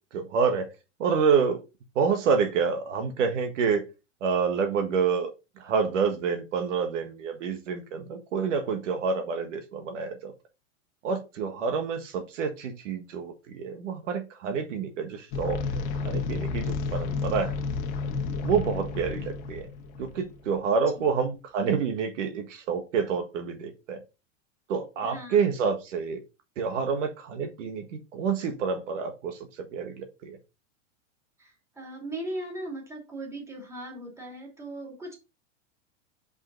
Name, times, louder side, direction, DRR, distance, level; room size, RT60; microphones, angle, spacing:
voice 1, 0.1-0.7 1.0-1.6 1.9-3.8 4.2-5.3 5.6-10.3 11.0-17.5 18.4-19.7 20.0-24.0 24.7-26.2 26.6-27.8 28.1-29.4 29.7-30.4, right 6 dB, 70° right, 6 dB, 1.6 m, -28 dB
sound 1, 15.3-20.5, left 4 dB, 45° left, 1.3 m, -31 dB
voice 2, 25.0-25.4 31.4-35.1, right 1 dB, 5° right, -1 dB, 2.6 m, -38 dB
5.7 x 5.5 x 3.9 m, 0.27 s
hypercardioid pair, 135°, 38 cm